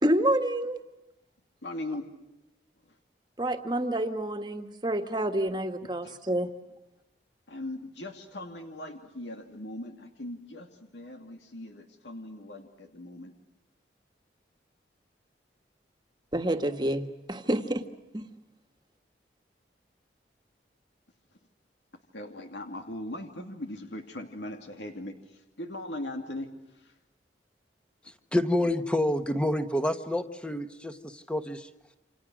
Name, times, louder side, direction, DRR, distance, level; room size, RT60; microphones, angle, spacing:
voice 1, 0.0-0.8 3.4-6.5 16.3-17.8 18.1-18.3, right 1 dB, 25° right, 7 dB, 1.6 m, -28 dB
voice 2, 1.6-2.1 2.9-3.0 6.0-6.2 7.5-13.3 22.1-26.9, left 1 dB, 85° left, 4 dB, 2.6 m, -40 dB
voice 3, 28.3-31.7, left 1 dB, 5° left, 8 dB, 1.4 m, -28 dB
29.0 x 27.0 x 6.3 m, 0.98 s
head